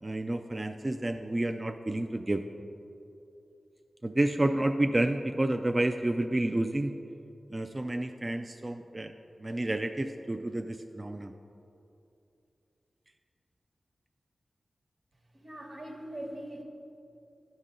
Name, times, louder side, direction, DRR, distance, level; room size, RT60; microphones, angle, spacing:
voice 1, 0.0-2.4 4.0-7.0 7.5-9.1 9.4-11.3, right 1 dB, 30° right, 6 dB, 0.3 m, -30 dB
voice 2, 15.3-16.6, right 1 dB, 65° right, -2 dB, 1.3 m, -41 dB
12.0 x 4.0 x 3.8 m, 2.7 s
cardioid pair, 45°, 0 cm